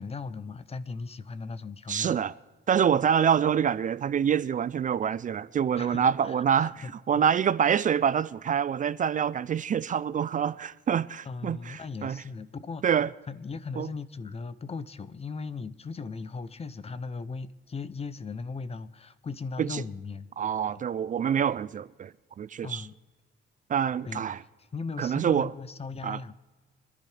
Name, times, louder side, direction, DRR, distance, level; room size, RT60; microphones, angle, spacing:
voice 1, 0.0-2.2 5.7-6.9 11.3-13.0 13.3-20.3 20.7-20.8 22.6-22.9 24.0-24.2 24.6-26.4, left 4 dB, 30° left, 0.7 m, -38 dB
voice 2, 1.9-2.3 2.7-6.7 7.1-12.2 12.8-13.1 13.8-13.9 19.6-19.8 20.4-22.1 22.4-22.9 23.7-24.4 25.0-25.5 26.0-26.2, right 8 dB, 40° right, 0.4 m, -26 dB
26.0 x 10.5 x 3.3 m
cardioid pair, 90°, 20 cm